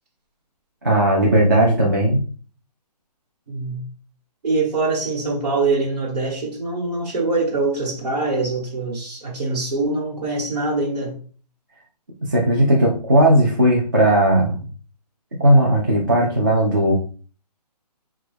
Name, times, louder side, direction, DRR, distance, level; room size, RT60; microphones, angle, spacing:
voice 1, 0.8-2.2 12.3-14.6 15.4-16.9, right 1 dB, 30° right, -3 dB, 0.5 m, -16 dB
voice 2, 3.5-3.9 4.4-11.2, right 3 dB, 70° right, -5 dB, 1.2 m, -23 dB
3.1 x 2.2 x 3.2 m, 0.40 s
hypercardioid pair, 175°, 21 cm